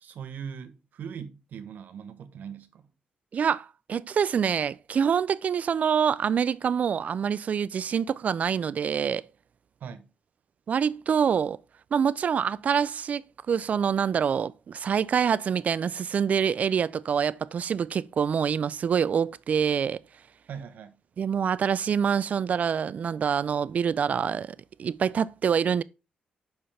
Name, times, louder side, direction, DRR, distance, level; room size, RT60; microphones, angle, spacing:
voice 1, 0.0-2.9 9.8-10.1 20.5-21.0, right 7 dB, 75° right, 0.9 m, -40 dB
voice 2, 3.3-9.2 10.7-11.6 11.9-20.0 21.2-25.8, right 7 dB, 55° right, 0.3 m, -26 dB
5.8 x 5.4 x 3.3 m
cardioid pair, 75°, 3 cm